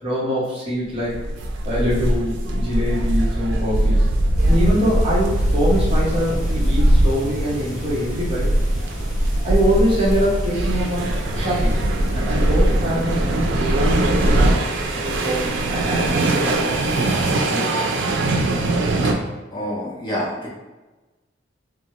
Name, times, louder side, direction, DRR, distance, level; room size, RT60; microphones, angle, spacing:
voice 1, 0.0-1.2 1.6-4.1 4.5-8.5 9.4-11.8 12.1-14.7 14.9-18.1, equal, 30° right, -7 dB, 0.9 m, -24 dB
sound 1, 1.0-19.1, right 1 dB, 80° right, 0.4 m, -21 dB
sound 2, 4.4-17.5, equal, 5° right, 1.0 m, -33 dB
voice 2, 19.5-20.5, equal, 25° left, -5 dB, 0.5 m, -27 dB
3.1 x 2.1 x 2.8 m, 1.1 s
head